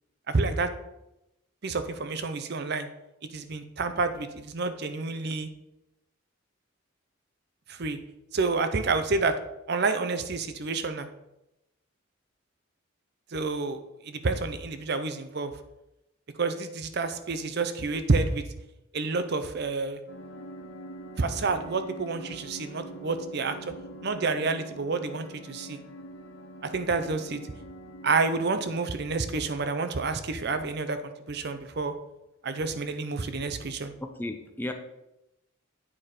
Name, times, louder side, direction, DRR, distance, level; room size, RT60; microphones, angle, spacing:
voice 1, 0.3-0.7 1.6-2.9 3.3-5.5 7.7-8.0 8.3-9.4 9.7-11.1 13.3-15.5 16.4-18.4 18.9-20.0 21.2-23.5 24.0-25.8 26.6-27.4 28.0-31.0 31.3-31.9 32.4-33.9, right 3 dB, 50° right, 10 dB, 0.6 m, -29 dB
sound 1, 20.1-28.8, right 1 dB, 60° left, 0.9 m, -44 dB
voice 2, 34.0-34.7, left 1 dB, 10° left, 5 dB, 0.6 m, -34 dB
8.7 x 4.9 x 4.3 m, 0.89 s
head